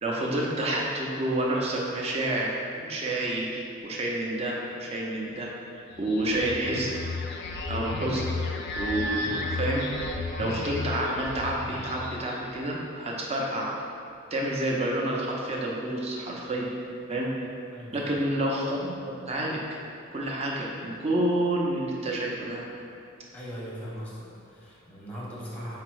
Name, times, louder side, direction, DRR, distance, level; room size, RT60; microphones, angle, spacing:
voice 1, 0.0-6.9 7.7-8.2 8.8-9.9 10.4-13.7 14.3-16.7 17.1-17.5 17.9-18.9 19.3-19.6 20.1-22.7, right 1 dB, 30° right, -3 dB, 0.5 m, -29 dB
sound 1, 5.9-12.6, left 2 dB, 55° left, 0.4 m, -33 dB
voice 2, 17.7-18.1 23.3-25.8, equal, 5° left, -6 dB, 0.8 m, -39 dB
4.9 x 2.0 x 4.6 m, 2.4 s
head